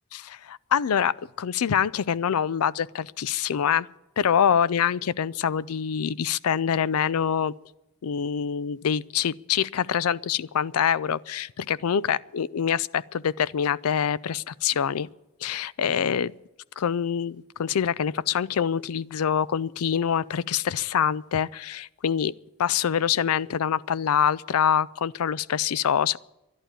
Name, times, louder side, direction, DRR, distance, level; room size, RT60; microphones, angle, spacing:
voice 1, 0.1-3.9 4.2-7.5 8.0-15.1 15.4-16.3 16.8-22.3 22.6-26.2, left 8 dB, 80° left, 0.4 m, -25 dB
11.5 x 11.5 x 9.0 m
head